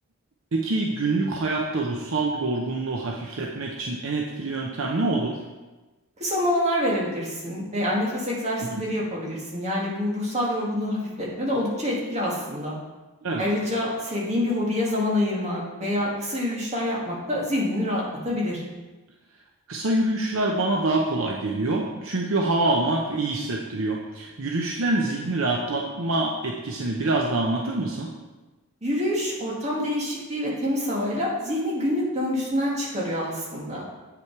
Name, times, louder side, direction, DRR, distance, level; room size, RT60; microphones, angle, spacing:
voice 1, 0.5-5.4 8.7-8.8 13.2-13.5 19.7-28.1, right 2 dB, 60° right, 0 dB, 0.7 m, -26 dB
voice 2, 6.2-12.8 13.4-18.6 28.8-33.8, left 1 dB, 30° right, -4 dB, 2.0 m, -26 dB
8.1 x 5.9 x 4.6 m, 1.2 s
head